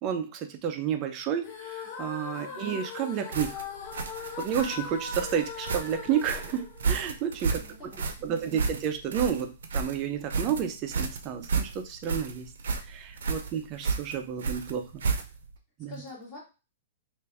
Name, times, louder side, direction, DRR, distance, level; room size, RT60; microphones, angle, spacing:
voice 1, 0.0-3.7 4.2-7.6 8.2-12.5 12.9-15.0 15.8-15.9, right 8 dB, 25° right, 6 dB, 0.5 m, -31 dB
sound 1, 1.4-7.5, left 6 dB, 35° left, 0.8 m, -40 dB
voice 2, 2.3-2.7 7.4-8.7 15.9-16.4, left 2 dB, 15° left, -6 dB, 1.8 m, -47 dB
sound 2, 3.3-15.5, right 5 dB, 90° right, 0.6 m, -32 dB
3.3 x 2.5 x 3.4 m, 0.30 s
hypercardioid pair, 170°, 0 cm